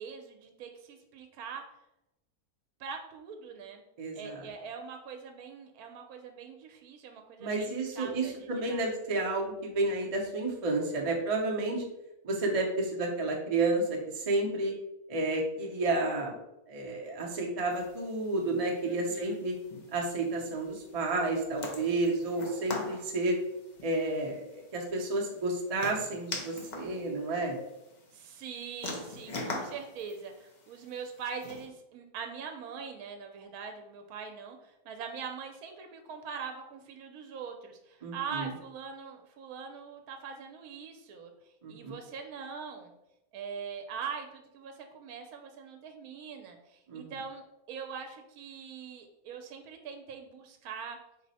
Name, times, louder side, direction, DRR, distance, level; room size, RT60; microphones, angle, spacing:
voice 1, 0.0-1.6 2.8-3.8 4.1-8.8 18.9-19.4 28.1-41.3 41.7-42.9 43.3-51.0, right 6 dB, 75° right, 4 dB, 1.1 m, -42 dB
voice 2, 4.0-4.4 7.4-11.8 12.2-14.7 15.1-16.3 16.7-19.5 19.9-23.4 23.8-27.6 38.0-38.5 41.6-42.0 46.9-47.1, right 2 dB, 40° right, 0 dB, 0.5 m, -31 dB
sound 1, 17.7-31.7, left 2 dB, 50° left, 0.5 m, -44 dB
4.6 x 2.1 x 4.0 m, 0.87 s
omnidirectional pair, 1.6 m